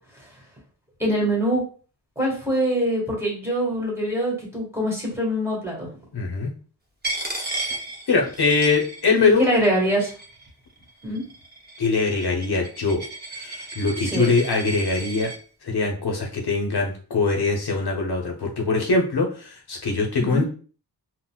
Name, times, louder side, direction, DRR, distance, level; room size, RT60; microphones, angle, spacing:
voice 1, 1.0-1.6 2.2-5.9 9.2-10.1 11.0-11.2 14.0-14.3 20.2-20.5, right 1 dB, 5° right, -3 dB, 1.5 m, -24 dB
voice 2, 6.1-6.5 7.4-7.6 8.1-9.5 11.8-13.0 13.4-15.3 15.6-20.5, left 4 dB, 65° left, 0 dB, 0.7 m, -22 dB
Coin (dropping), 7.0-9.4 9.6-10.5 11.2-15.4, right 2 dB, 25° right, 0.7 m, -34 dB
3.8 x 2.1 x 2.2 m, 0.39 s
wide cardioid pair, 70°, 42 cm